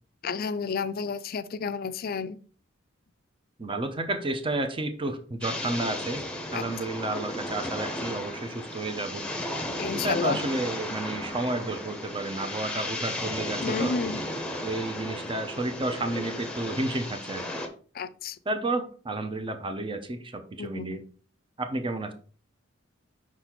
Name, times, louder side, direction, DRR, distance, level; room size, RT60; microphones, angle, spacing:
voice 1, 0.2-2.4 6.5-6.6 9.8-10.4 13.6-14.2 17.9-18.4 20.6-21.0, left 5 dB, 50° left, 0.4 m, -31 dB
voice 2, 3.6-6.2 6.5-9.3 9.9-14.0 14.6-17.6 18.5-21.0 21.6-22.1, right 2 dB, 25° right, 0.7 m, -31 dB
sound 1, 5.4-17.7, left 1 dB, 5° left, 0.9 m, -34 dB
5.9 x 4.2 x 4.4 m
head